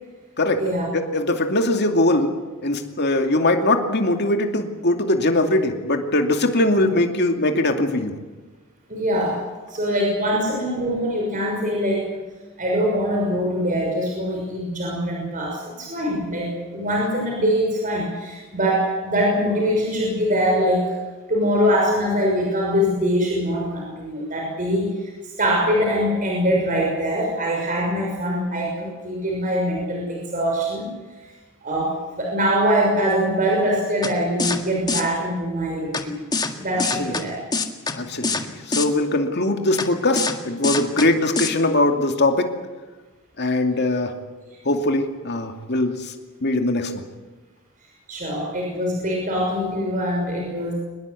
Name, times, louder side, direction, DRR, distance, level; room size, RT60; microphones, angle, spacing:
voice 1, 0.9-2.4 2.6-8.1 37.0-37.3 37.9-42.5 43.4-44.2 44.6-46.1 46.4-47.1, left 2 dB, 50° left, 4 dB, 2.6 m, -21 dB
voice 2, 8.9-9.4 9.7-12.1 12.6-20.9 21.3-30.9 31.2-31.3 31.6-36.2 36.6-37.4 48.1-50.7, equal, 40° right, -1 dB, 6.2 m, -23 dB
sound 1, 34.0-34.1 34.4-34.6 34.9-35.0 35.9-36.0 36.3-36.5 36.8-37.2 37.5-37.9 38.2-38.4 38.7-38.9 39.8-39.9 40.2-40.3 40.6-41.1 41.4-41.5, left 4 dB, 20° left, 1.9 m, -23 dB
24.0 x 20.5 x 8.5 m, 1.3 s
head